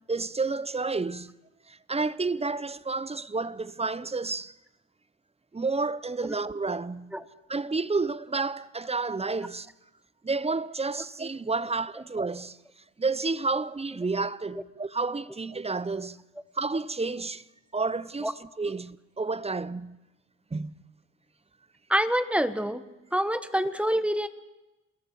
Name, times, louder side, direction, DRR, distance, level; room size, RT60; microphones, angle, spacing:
voice 1, 0.1-1.3 1.7-4.5 5.5-7.1 7.5-9.7 10.2-12.6 13.0-16.2 16.5-17.4 17.7-20.0 20.5-20.8, right 3 dB, 20° right, 0.7 m, -30 dB
voice 2, 21.9-22.8 23.1-24.3, equal, 5° right, 1.5 m, -26 dB
28.5 x 21.5 x 4.7 m
cardioid pair, 75°, 29 cm